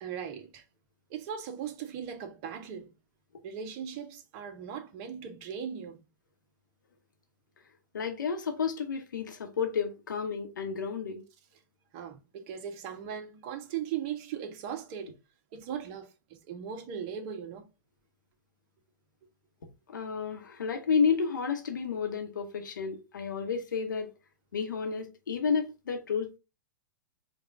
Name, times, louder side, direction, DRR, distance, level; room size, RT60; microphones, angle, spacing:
voice 1, 0.0-0.6 1.1-2.9 3.4-6.0 11.9-15.2 15.5-17.7, right 8 dB, 40° right, 0.8 m, -38 dB
voice 2, 7.9-11.2 19.9-24.1 24.5-26.4, left 6 dB, 70° left, 0.9 m, -31 dB
4.6 x 2.3 x 3.5 m
figure-of-eight pair, 105°, 11 cm